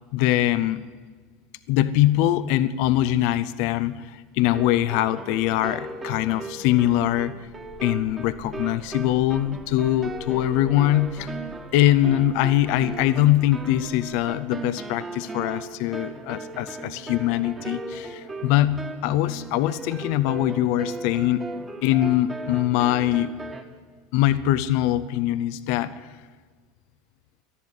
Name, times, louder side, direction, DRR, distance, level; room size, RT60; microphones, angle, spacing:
voice 1, 0.1-0.9 1.7-7.4 7.8-11.3 11.7-21.5 21.8-23.4 24.1-26.0, left 13 dB, 60° left, 15 dB, 0.5 m, -22 dB
sound 1, 4.4-23.6, right 3 dB, 20° right, 1.8 m, -37 dB
sound 2, 7.4-14.6, right 2 dB, 45° right, 1.6 m, -48 dB
13.0 x 11.0 x 9.9 m, 1.5 s
hypercardioid pair, 80°, 0 cm